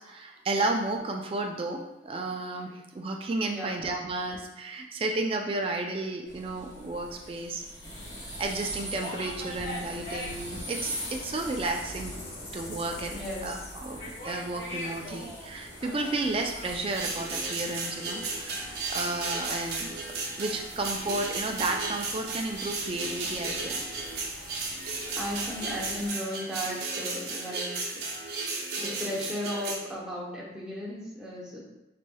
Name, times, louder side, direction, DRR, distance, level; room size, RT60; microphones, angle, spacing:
voice 1, 0.0-7.6 8.4-12.1 12.5-13.1 13.4-19.9 20.4-23.9, right 2 dB, 30° right, 2 dB, 0.4 m, -32 dB
voice 2, 3.5-3.8 13.1-13.6 25.1-28.0 28.8-31.6, equal, 5° right, -7 dB, 0.8 m, -36 dB
sound 1, 6.3-26.1, equal, 75° left, 1.4 m, -41 dB
sound 2, 16.8-29.7, right 3 dB, 60° right, 0.7 m, -34 dB
4.1 x 3.1 x 2.3 m, 0.94 s
head